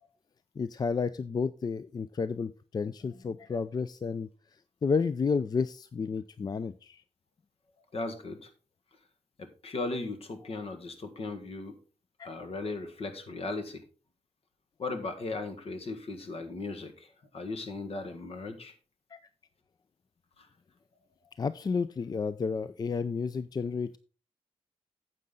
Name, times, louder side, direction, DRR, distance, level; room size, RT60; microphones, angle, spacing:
voice 1, 0.6-7.0 12.2-12.3 19.1-19.2 21.4-24.0, left 5 dB, 35° left, 14 dB, 0.4 m, -31 dB
voice 2, 7.9-8.5 9.4-11.8 12.2-13.8 14.8-18.7 20.4-20.5, left 3 dB, 65° left, 8 dB, 1.7 m, -37 dB
9.4 x 7.6 x 3.8 m, 0.36 s
wide cardioid pair, 100°, 11 cm